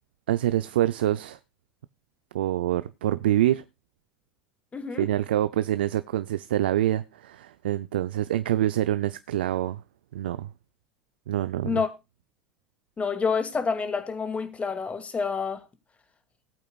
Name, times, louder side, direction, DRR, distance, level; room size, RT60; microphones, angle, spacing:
voice 1, 0.3-1.4 2.3-3.6 5.0-9.8 10.1-10.5 11.3-11.8, right 13 dB, 85° right, 0.5 m, -26 dB
voice 2, 4.7-5.1 11.6-11.9 13.0-15.6, left 5 dB, 25° left, 2.3 m, -28 dB
19.0 x 8.7 x 2.4 m
hypercardioid pair, 80°, 5 cm